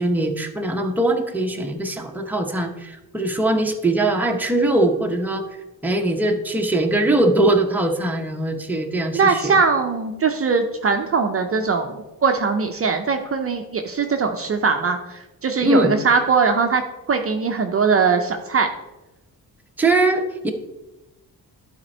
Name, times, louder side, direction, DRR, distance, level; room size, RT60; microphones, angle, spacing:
voice 1, 0.0-5.4 5.8-9.4 15.6-15.9 19.8-20.5, right 2 dB, 5° right, 2 dB, 0.8 m, -21 dB
voice 2, 9.1-18.7, right 5 dB, 35° right, 5 dB, 0.6 m, -21 dB
12.0 x 4.3 x 4.3 m, 1.0 s
cardioid pair, 140°, 38 cm